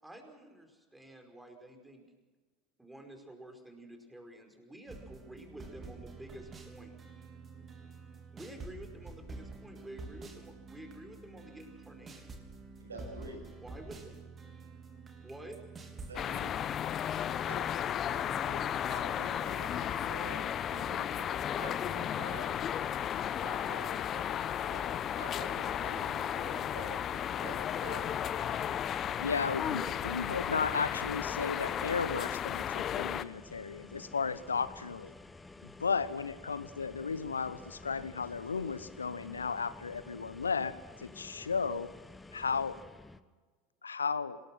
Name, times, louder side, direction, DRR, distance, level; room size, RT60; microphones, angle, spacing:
voice 1, 0.0-2.0 2.8-7.0 8.3-12.4 13.6-14.2 15.2-15.7 22.0-22.2 29.8-29.9, right 1 dB, 5° right, 5 dB, 5.1 m, -50 dB
sound 1, 4.9-16.1, right 3 dB, 25° right, 3.8 m, -48 dB
voice 2, 12.8-13.5 16.1-16.5 17.5-24.3 24.6-28.0 28.3-28.8, right 1 dB, 80° right, 3 dB, 7.1 m, -47 dB
sound 2, 16.1-33.2, left 9 dB, 35° left, 0.8 m, -34 dB
sound 3, 27.2-43.2, left 2 dB, 10° left, 1.1 m, -52 dB
voice 3, 29.2-35.1 35.6-41.9 42.3-42.8 43.8-44.4, left 5 dB, 80° left, 15 dB, 1.1 m, -34 dB
27.0 x 19.5 x 6.2 m, 1.3 s
figure-of-eight pair, 75°, 0 cm